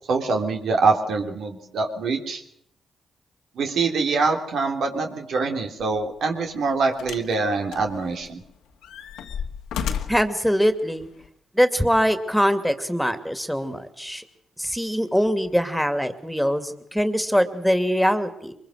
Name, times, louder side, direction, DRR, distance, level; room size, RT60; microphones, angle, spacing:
voice 1, 0.1-2.4 3.6-8.4, right 4 dB, 75° right, 3 dB, 3.2 m, -24 dB
sound 1, 5.8-6.0 7.0-7.4 7.7-8.4 8.8-10.3 11.2-11.3, left 7 dB, 85° left, 2.0 m, -32 dB
voice 2, 10.1-11.1 11.5-14.2 14.6-18.5, equal, ahead, 9 dB, 2.7 m, -22 dB
23.5 x 22.0 x 6.5 m, 0.71 s
supercardioid pair, 55°, 0 cm